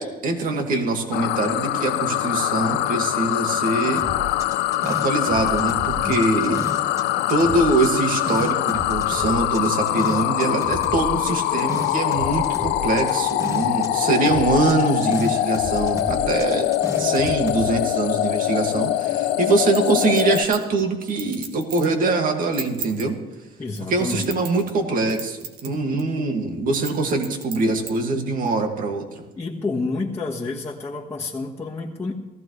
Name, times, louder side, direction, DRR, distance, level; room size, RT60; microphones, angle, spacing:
voice 1, 0.0-4.0 4.8-6.6 7.3-16.7 17.0-23.2 23.9-29.2, right 3 dB, 55° right, 4 dB, 2.2 m, -23 dB
sound 1, 1.1-20.4, left 14 dB, 90° left, 0.6 m, -23 dB
sound 2, 4.0-7.0 7.3-13.9 14.1-17.7, equal, 15° right, 2.3 m, -34 dB
voice 2, 6.0-6.6 23.6-24.3 29.4-32.1, left 3 dB, 15° left, -5 dB, 1.6 m, -29 dB
Chink clink, 19.7-21.9 22.4-23.0 23.7-24.8 25.1-25.7 26.0-26.1 26.7-27.9 28.5-28.6, right 6 dB, 80° right, 1.9 m, -34 dB
18.5 x 15.5 x 3.3 m, 1.1 s
cardioid pair, 110°, 17 cm